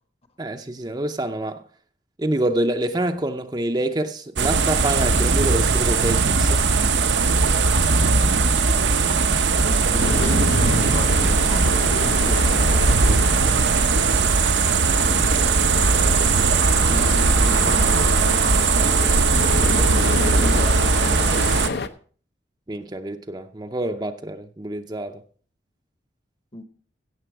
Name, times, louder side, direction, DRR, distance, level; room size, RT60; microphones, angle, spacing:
voice 1, 0.4-1.7 2.2-6.6 22.7-25.2, right 1 dB, 25° right, 0.6 m, -26 dB
sound 1, 4.4-21.7, right 4 dB, 80° right, 0.9 m, -19 dB
voice 2, 9.5-13.6 16.7-21.8 26.5-26.6, left 1 dB, 35° left, 1.0 m, -34 dB
sound 2, 10.0-21.9, left 3 dB, 65° left, 0.7 m, -30 dB
16.0 x 7.0 x 4.7 m
head